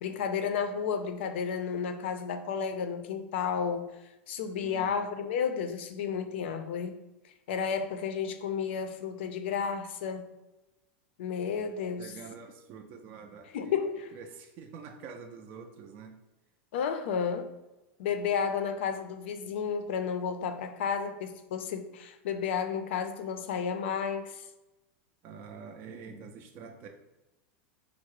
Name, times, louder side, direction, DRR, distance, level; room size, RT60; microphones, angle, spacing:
voice 1, 0.0-4.0 4.3-7.0 7.5-10.3 11.2-12.1 13.5-14.1 16.7-17.5 18.0-24.4, left 6 dB, 65° left, 8 dB, 0.5 m, -32 dB
voice 2, 4.6-5.0 12.0-13.7 14.1-16.2 25.2-26.9, right 5 dB, 30° right, 3 dB, 0.3 m, -46 dB
4.6 x 2.0 x 4.6 m, 1.0 s
supercardioid pair, 175°, 6 cm